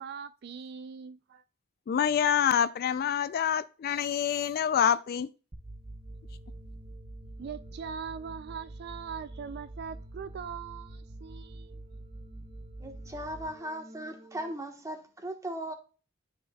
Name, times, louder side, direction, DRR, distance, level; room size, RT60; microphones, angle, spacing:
voice 1, 0.0-1.4 7.4-11.7, right 6 dB, 50° right, 0.3 m, -41 dB
voice 2, 1.9-5.3, left 8 dB, 45° left, 0.3 m, -26 dB
sound 1, 5.5-14.5, right 1 dB, 30° right, 0.7 m, -46 dB
voice 3, 12.8-15.7, right 1 dB, 15° right, 1.2 m, -38 dB
11.5 x 4.7 x 2.2 m
head